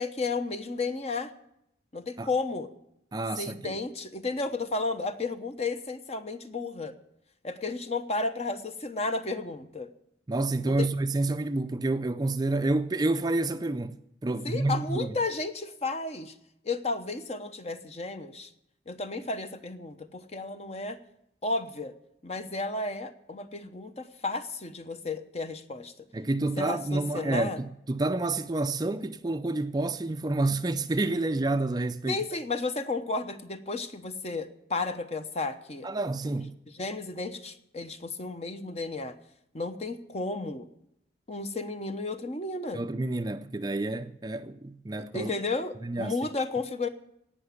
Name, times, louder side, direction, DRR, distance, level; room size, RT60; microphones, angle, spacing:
voice 1, 0.0-1.3 1.9-2.7 3.4-7.0 7.4-9.9 10.6-10.9 14.4-16.3 16.6-18.5 18.9-21.0 21.4-21.9 22.2-25.9 26.6-27.6 32.1-35.9 36.7-39.2 39.5-40.7 41.3-42.8 45.0-46.9, left 3 dB, 35° left, 0.9 m, -33 dB
voice 2, 3.1-3.8 10.3-14.0 14.2-15.1 26.1-32.2 35.8-36.5 42.7-45.3 45.8-46.2, right 2 dB, 20° right, 0.4 m, -29 dB
17.5 x 6.0 x 9.6 m
head